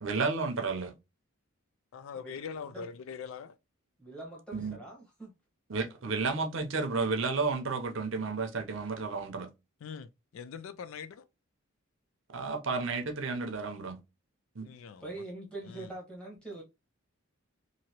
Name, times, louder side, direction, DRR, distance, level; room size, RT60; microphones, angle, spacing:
voice 1, 0.0-0.9 4.5-4.8 5.7-9.5 12.3-14.0 14.6-14.7, right 4 dB, 60° right, 0.6 m, -32 dB
voice 2, 1.9-3.6 9.8-11.2 14.6-15.2 15.6-15.9, left 6 dB, 65° left, 0.3 m, -43 dB
voice 3, 4.0-5.3 15.0-16.6, right 2 dB, 5° left, 1.1 m, -43 dB
2.9 x 2.7 x 2.8 m
head